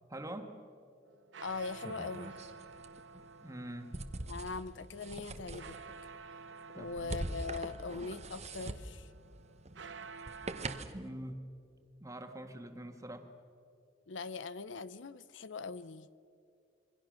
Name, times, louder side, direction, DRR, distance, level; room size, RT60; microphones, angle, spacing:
voice 1, 0.1-0.5 3.4-4.0 6.7-7.3 10.9-11.4 12.0-13.3, right 1 dB, 15° right, 6 dB, 1.7 m, -44 dB
sound 1, 1.1-10.8, right 5 dB, 75° right, 0.9 m, -51 dB
voice 2, 1.4-2.4 4.3-5.8 6.7-9.1 14.1-16.1, left 4 dB, 75° left, 16 dB, 0.7 m, -41 dB
sound 2, 1.4-11.1, right 2 dB, 35° right, 1.1 m, -44 dB
27.5 x 23.0 x 6.4 m, 2.4 s
head